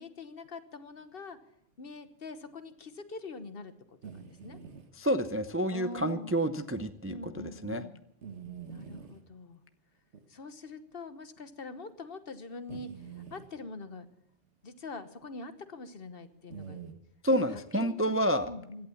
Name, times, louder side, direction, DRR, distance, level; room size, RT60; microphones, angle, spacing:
voice 1, 0.0-1.4 1.8-4.6 5.7-6.5 7.1-8.0 8.7-9.6 10.3-14.1 14.6-16.8 17.4-18.2 18.5-18.9, left 3 dB, 60° left, 10 dB, 1.3 m, -44 dB
sound 1, 4.0-4.9 6.0-6.1 6.7-6.9 8.2-9.2 10.1-10.3 11.4-11.5 12.7-13.5 16.5-16.9, right 7 dB, 80° right, 1.7 m, -45 dB
voice 2, 5.0-7.8 17.2-18.5, equal, 15° right, 9 dB, 0.5 m, -29 dB
16.5 x 11.5 x 7.1 m, 0.76 s
omnidirectional pair, 1.1 m